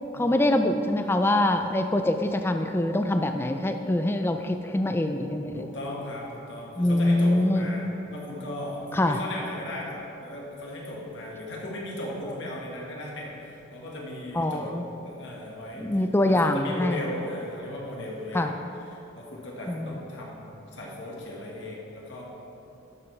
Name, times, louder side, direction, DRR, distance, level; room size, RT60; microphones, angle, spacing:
voice 1, 0.1-5.6 6.8-7.6 8.9-9.2 14.3-14.8 15.8-17.0 18.3-18.5 19.7-20.0, left 1 dB, 10° left, 6 dB, 0.3 m, -24 dB
voice 2, 5.5-14.7 15.0-18.5 18.9-22.2, left 1 dB, 60° left, -3 dB, 1.7 m, -37 dB
11.5 x 6.9 x 3.3 m, 2.9 s
head